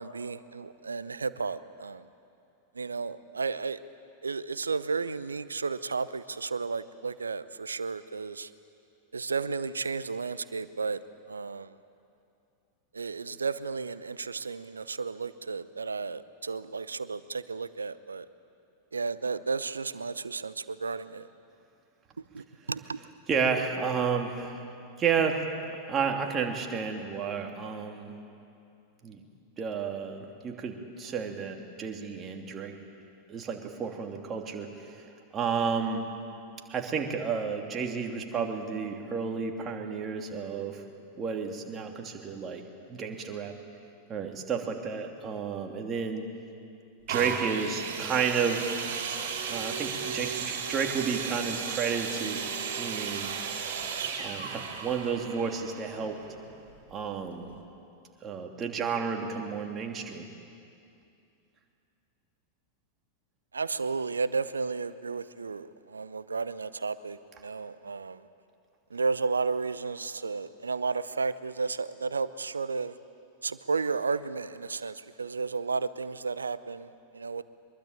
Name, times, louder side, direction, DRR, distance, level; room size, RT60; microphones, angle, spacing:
voice 1, 0.0-2.0 2.8-3.8 4.2-8.5 9.1-11.0 11.3-11.7 12.9-18.3 18.9-21.3 22.3-23.0 63.5-68.2 68.9-72.9 73.4-77.4, right 4 dB, 75° right, 16 dB, 0.7 m, -33 dB
voice 2, 23.3-24.6 25.0-28.1 29.0-29.2 29.6-32.8 33.3-35.1 35.3-36.0 36.7-40.8 41.2-42.6 42.9-43.5 44.1-46.3 47.1-48.7 49.5-52.4 52.7-53.3 54.2-56.2 56.9-57.5 58.2-60.3, right 6 dB, 25° right, 2 dB, 2.9 m, -31 dB
sound 1, 47.1-56.8 57.5-57.6, right 6 dB, 55° right, 4.0 m, -35 dB
24.0 x 22.5 x 8.9 m, 2.6 s
figure-of-eight pair, 90°, 0 cm